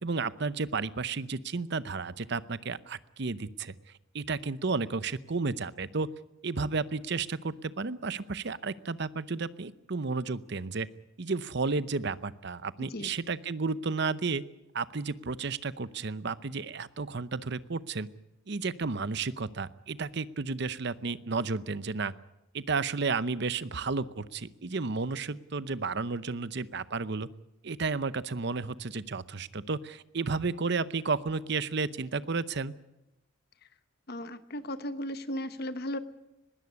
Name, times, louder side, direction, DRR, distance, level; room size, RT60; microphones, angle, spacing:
voice 1, 0.0-3.7 4.1-6.1 6.4-10.9 11.2-14.4 14.7-18.1 18.5-22.1 22.5-27.3 27.6-32.7, right 4 dB, 55° right, 16 dB, 0.7 m, -32 dB
voice 2, 34.1-36.0, left 1 dB, 50° left, 11 dB, 1.1 m, -35 dB
20.5 x 16.5 x 9.7 m, 0.93 s
head